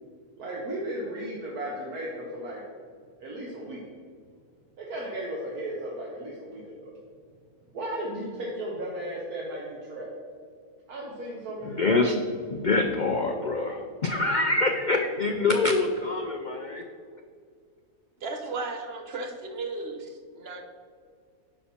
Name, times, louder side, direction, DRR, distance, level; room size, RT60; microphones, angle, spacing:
voice 1, 0.4-2.6 3.2-3.8 4.8-6.9 7.7-10.1 10.9-12.0, right 1 dB, 75° right, 1.8 m, -35 dB
voice 2, 11.7-12.1 12.5-16.8, left 3 dB, 70° left, 0.4 m, -25 dB
voice 3, 18.2-20.6, right 3 dB, 50° right, 1.0 m, -35 dB
10.0 x 5.8 x 4.4 m
omnidirectional pair, 1.6 m